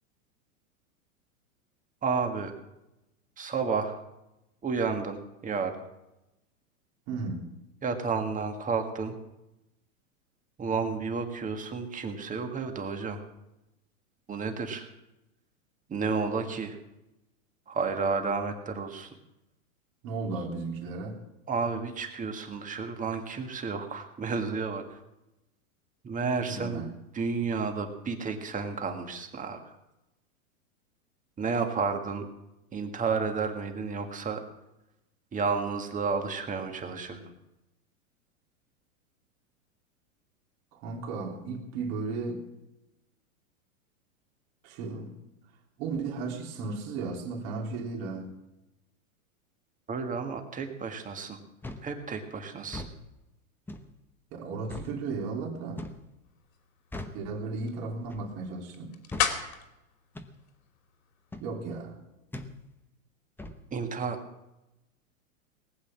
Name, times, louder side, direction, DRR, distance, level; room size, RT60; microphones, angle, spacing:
voice 1, 2.0-2.5 3.4-4.0 4.6-5.8 7.8-9.2 10.6-13.2 14.3-14.9 15.9-16.8 17.7-19.1 21.5-25.0 26.0-26.8 27.1-29.7 31.4-32.3 32.7-34.4 35.3-37.2 49.9-51.4 51.8-52.8 63.7-64.2, right 5 dB, 20° right, 5 dB, 1.8 m, -31 dB
voice 2, 7.1-7.5 20.0-21.2 26.5-26.9 40.7-42.4 44.6-45.2 45.8-48.3 54.3-55.8 57.1-59.0 61.4-62.0, right 4 dB, 50° right, 1 dB, 3.3 m, -35 dB
sound 1, 51.6-51.9 52.6-53.0 53.7-53.9 54.7-54.9 55.8-56.1 56.9-57.2 58.1-58.3 59.1-59.3 60.1-60.3 61.3-61.5 62.3-62.5 63.4-63.6, left 2 dB, 5° left, 0.9 m, -40 dB
sound 2, 56.2-61.4, left 8 dB, 70° left, 3.0 m, -37 dB
19.0 x 8.4 x 7.4 m, 0.94 s
hypercardioid pair, 125°, 42 cm